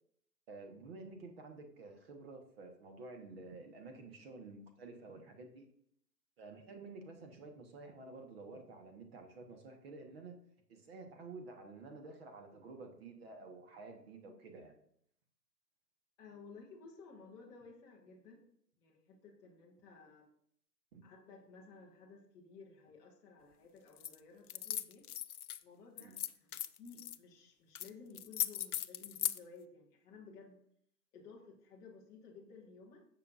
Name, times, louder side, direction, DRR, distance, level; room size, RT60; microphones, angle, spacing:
voice 1, 0.5-5.7 6.4-10.4 10.7-14.8 20.9-21.0 26.0-26.2, right 3 dB, 40° right, 4 dB, 1.3 m, -51 dB
voice 2, 16.2-18.4 18.8-20.3 21.0-25.1 25.6-30.6 31.1-33.1, left 4 dB, 5° left, -3 dB, 0.5 m, -56 dB
sound 1, 24.0-24.2 24.5-25.6 26.0-27.2 27.7-27.9 28.1-29.4, left 10 dB, 65° left, 0.6 m, -38 dB
15.0 x 6.0 x 2.5 m, 0.68 s
figure-of-eight pair, 130°, 49 cm